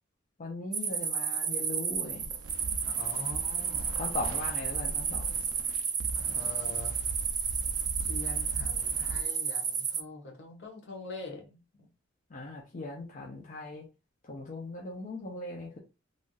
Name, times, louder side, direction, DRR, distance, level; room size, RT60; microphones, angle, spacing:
voice 1, 0.4-2.2 3.9-5.5 12.3-13.9 14.2-15.8, left 2 dB, 40° left, 0.6 m, -39 dB
sound 1, 0.7-10.0, right 6 dB, 20° right, 0.3 m, -32 dB
sound 2, 1.9-9.2, right 2 dB, 85° right, 0.5 m, -41 dB
voice 2, 2.8-4.0 6.1-7.0 8.0-11.9, left 2 dB, 60° left, 1.1 m, -44 dB
3.3 x 2.6 x 2.3 m
head